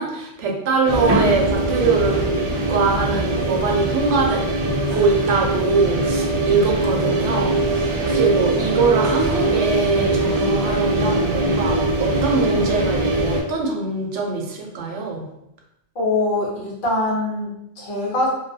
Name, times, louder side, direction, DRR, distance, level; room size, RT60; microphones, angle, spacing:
voice 1, 0.0-2.4 2.7-4.4 4.9-15.2, right 4 dB, 90° right, 1 dB, 0.9 m, -22 dB
sound 1, 0.9-13.4, right 2 dB, 60° right, 0.6 m, -21 dB
voice 2, 15.9-18.3, left 2 dB, 55° left, -4 dB, 0.8 m, -23 dB
2.3 x 2.2 x 2.6 m, 0.82 s
omnidirectional pair, 1.2 m